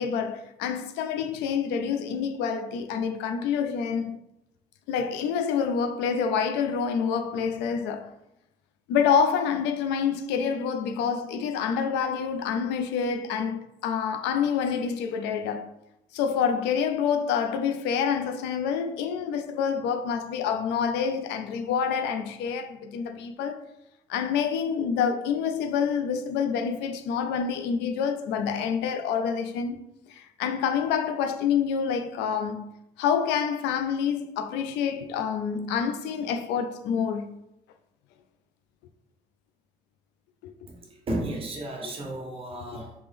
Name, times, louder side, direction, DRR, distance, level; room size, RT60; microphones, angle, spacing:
voice 1, 0.0-4.2 4.9-8.1 8.9-15.7 16.1-23.6 24.1-29.8 30.1-37.4 40.4-40.5, left 7 dB, 90° left, 0.4 m, -27 dB
voice 2, 40.7-42.9, right 1 dB, 35° right, 1.1 m, -33 dB
3.5 x 2.9 x 3.4 m
cardioid pair, 110°, 17 cm